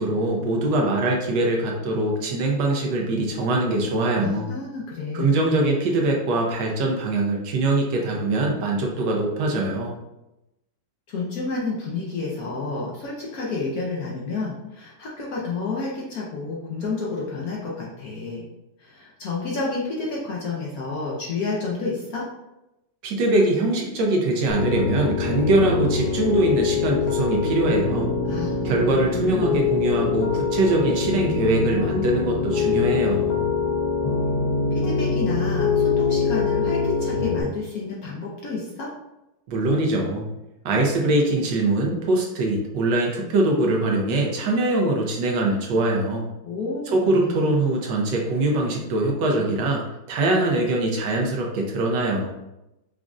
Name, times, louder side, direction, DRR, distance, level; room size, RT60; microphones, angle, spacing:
voice 1, 0.0-4.5 5.1-9.9 23.0-28.1 28.6-33.4 39.5-40.3 40.6-46.2 46.9-49.8 50.1-52.3, right 2 dB, 75° right, 0 dB, 1.2 m, -22 dB
voice 2, 4.2-5.8 11.1-18.5 18.8-22.2 28.3-28.7 29.1-29.6 34.7-38.9 46.4-47.5, left 3 dB, 65° left, -4 dB, 1.0 m, -30 dB
Piano, 24.5-37.4, left 5 dB, 85° left, 1.4 m, -24 dB
5.1 x 2.3 x 2.4 m, 0.93 s
omnidirectional pair, 2.1 m